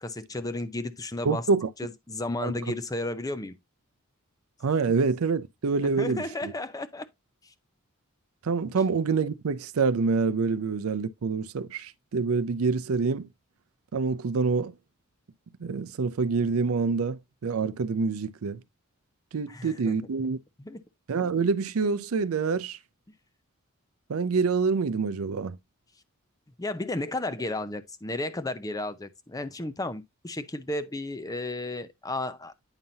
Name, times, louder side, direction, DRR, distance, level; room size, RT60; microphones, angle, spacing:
voice 1, 0.0-1.4 1.8-3.5 5.8-7.1 7.4-7.5 8.7-8.8 19.5-20.0 20.6-20.8 26.6-32.5, left 2 dB, 15° left, 0.6 m, -33 dB
voice 2, 1.2-1.7 2.4-2.5 4.6-6.5 8.4-13.3 13.9-14.7 15.6-18.6 19.3-20.4 21.1-22.8 24.1-25.6, right 4 dB, 85° right, 0.5 m, -26 dB
9.0 x 5.5 x 2.7 m
head